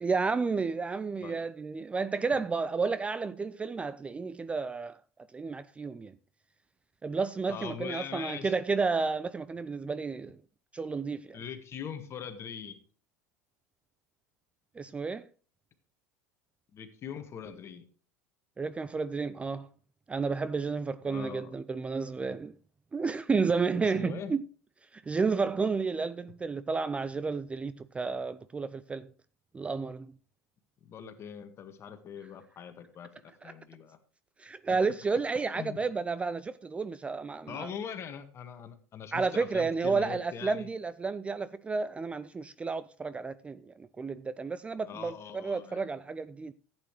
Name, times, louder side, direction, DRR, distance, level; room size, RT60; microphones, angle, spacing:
voice 1, 0.0-5.0 5.3-6.1 7.0-10.4 10.7-11.4 14.8-15.3 18.6-19.7 20.1-22.5 22.9-24.4 24.9-29.1 29.5-30.1 34.4-37.7 39.1-46.5, right 4 dB, 15° right, 0.4 m, -31 dB
voice 2, 7.5-8.6 11.3-12.8 16.7-17.9 21.0-21.5 23.7-24.4 30.8-34.0 34.7-34.8 35.5-35.8 37.5-40.7 44.9-46.0, left 7 dB, 35° left, 1.7 m, -42 dB
14.5 x 8.7 x 3.1 m
figure-of-eight pair, 80°, 8 cm